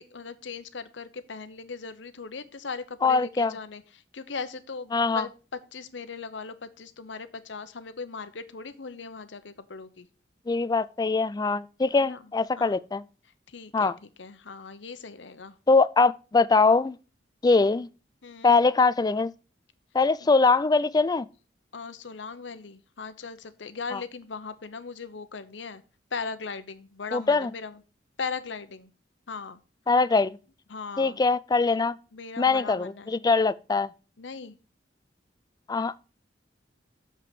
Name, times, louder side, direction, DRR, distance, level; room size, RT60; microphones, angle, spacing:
voice 1, 0.0-10.1 12.0-12.2 12.6-12.7 13.5-15.6 18.2-18.5 20.2-20.3 21.7-25.8 26.1-27.8 28.2-28.9 29.3-29.6 30.7-31.2 32.1-33.1 34.2-34.6, left 5 dB, 75° left, 0.9 m, -38 dB
voice 2, 3.0-3.5 4.9-5.2 10.5-13.0 13.7-14.0 15.7-17.0 17.4-17.9 18.4-19.3 19.9-21.3 23.9-24.0 27.1-27.5 29.9-30.4 31.0-32.0 32.4-33.9 35.7-35.9, left 4 dB, 20° left, 0.3 m, -22 dB
6.9 x 6.0 x 6.0 m
head